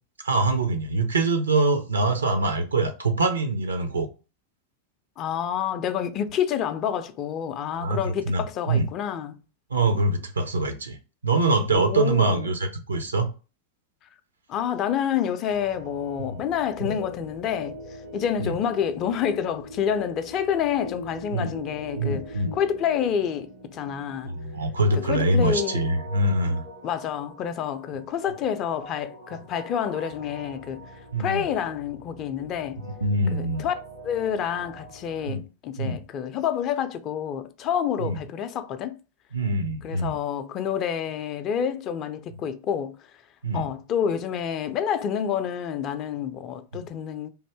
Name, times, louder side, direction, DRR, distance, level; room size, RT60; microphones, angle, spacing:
voice 1, 0.2-4.1 7.7-8.9 9.7-11.0 11.2-13.3 16.2-16.4 16.8-17.0 18.4-18.5 21.3-21.5 22.0-22.5 24.2-26.6 31.1-31.5 33.0-33.7 35.3-35.4 35.8-36.0 38.0-38.2 39.3-40.1 43.4-43.7 46.7-46.8, right 2 dB, 75° right, 0.6 m, -24 dB
voice 2, 5.2-9.4 11.7-12.5 14.5-17.7 18.1-24.3 24.9-25.8 26.8-30.9 31.2-32.8 33.3-33.7 34.0-39.0 39.8-43.0 43.5-47.3, left 8 dB, 35° left, 0.4 m, -28 dB
sound 1, 15.5-35.3, equal, 90° right, 2.0 m, -43 dB
3.4 x 2.6 x 3.3 m
figure-of-eight pair, 90°, 0 cm